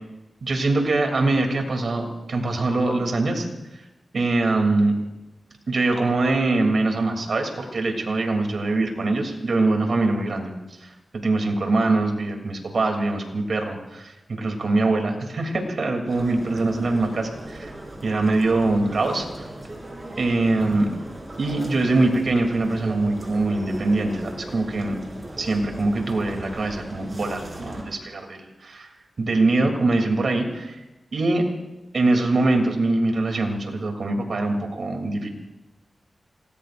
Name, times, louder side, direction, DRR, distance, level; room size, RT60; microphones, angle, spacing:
voice 1, 0.4-3.5 4.1-5.0 5.7-10.5 10.8-17.7 18.0-19.5 20.2-20.9 21.4-25.0 25.4-28.9 29.2-30.8 31.1-31.4 31.9-35.3, right 2 dB, 70° right, 3 dB, 3.0 m, -23 dB
sound 1, 16.1-27.8, right 1 dB, 35° right, 5.6 m, -38 dB
29.0 x 19.0 x 2.6 m, 1.0 s
cardioid pair, 55°, 0 cm